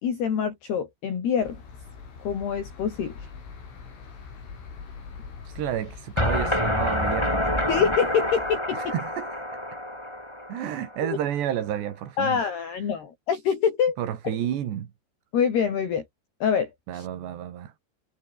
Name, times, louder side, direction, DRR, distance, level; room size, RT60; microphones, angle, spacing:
voice 1, 0.0-1.6 2.3-3.1 7.7-8.9 11.1-11.2 12.2-14.0 15.3-16.0 16.4-17.1, left 7 dB, 55° left, 5.6 m, -25 dB
sound 1, 1.4-8.6, left 5 dB, 70° left, 9.6 m, -43 dB
voice 2, 5.5-7.7 8.7-9.6 10.5-12.4 14.0-14.9 16.9-17.7, right 10 dB, 60° right, 4.1 m, -31 dB
sound 2, 6.2-11.1, left 1 dB, 5° left, 5.3 m, -27 dB
omnidirectional pair, 5.9 m